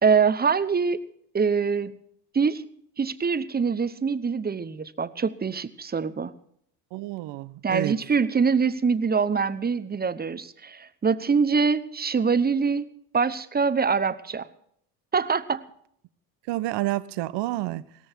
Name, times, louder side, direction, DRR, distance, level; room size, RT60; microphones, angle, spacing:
voice 1, 0.0-1.0 1.3-1.9 2.3-2.6 3.0-6.3 7.6-12.9 13.1-14.5 15.1-15.6, right 5 dB, 20° right, 0.9 m, -24 dB
voice 2, 6.9-8.0 16.5-17.8, right 16 dB, 60° right, 0.9 m, -29 dB
17.5 x 14.0 x 4.5 m
hypercardioid pair, 75°, 49 cm